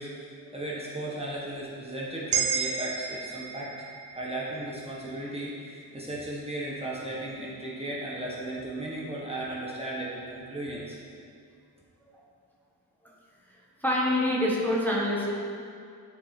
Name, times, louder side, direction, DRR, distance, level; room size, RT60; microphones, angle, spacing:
voice 1, 0.0-3.7 4.1-11.0, right 1 dB, 15° right, -6 dB, 1.5 m, -36 dB
sound 1, 2.3-6.6, right 7 dB, 80° right, 0.7 m, -34 dB
voice 2, 13.8-15.3, left 1 dB, 5° left, -5 dB, 1.5 m, -26 dB
9.4 x 4.7 x 4.3 m, 2.4 s
cardioid pair, 60°, 38 cm